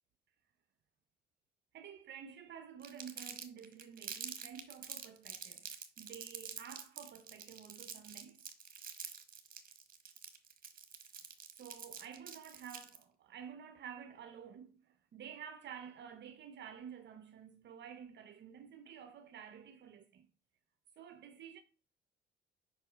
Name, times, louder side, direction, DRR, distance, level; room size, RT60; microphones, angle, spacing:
voice 1, 1.7-8.4 11.6-20.3 21.0-21.6, right 8 dB, 65° right, 0.6 m, -51 dB
Crumpling crinkling, 2.8-13.0, right 7 dB, 45° right, 1.2 m, -47 dB
5.4 x 4.0 x 5.8 m
cardioid pair, 90°, 20 cm